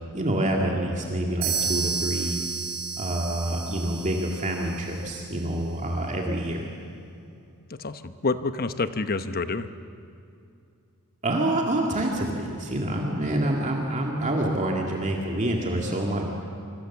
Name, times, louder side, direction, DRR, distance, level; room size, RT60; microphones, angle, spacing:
voice 1, 0.1-2.4 3.0-6.7 11.2-16.3, right 1 dB, 35° right, 0 dB, 2.3 m, -27 dB
sound 1, 1.4-5.2, right 5 dB, 50° right, 5.9 m, -31 dB
voice 2, 7.7-9.7, left 3 dB, 40° left, 11 dB, 1.0 m, -28 dB
26.5 x 25.0 x 7.3 m, 2.6 s
head